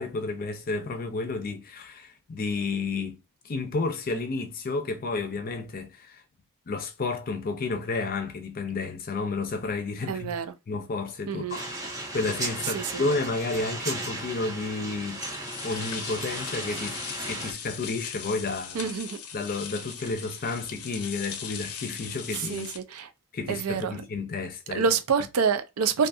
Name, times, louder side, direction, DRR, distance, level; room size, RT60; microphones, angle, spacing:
voice 1, 0.0-3.2 3.4-6.2 6.7-10.3 10.7-15.2 15.6-18.9 19.3-22.7 23.0-23.1 23.3-24.9, left 3 dB, 40° left, 0.5 m, -31 dB
voice 2, 10.1-10.5 11.3-11.6 12.7-13.0 18.7-19.2 22.5-23.1 23.5-24.0 24.7-26.1, right 6 dB, 85° right, 0.5 m, -27 dB
sound 1, 11.5-17.5, right 2 dB, 15° right, 0.7 m, -35 dB
sound 2, 15.1-22.8, left 7 dB, 90° left, 0.5 m, -39 dB
2.5 x 2.4 x 2.6 m
head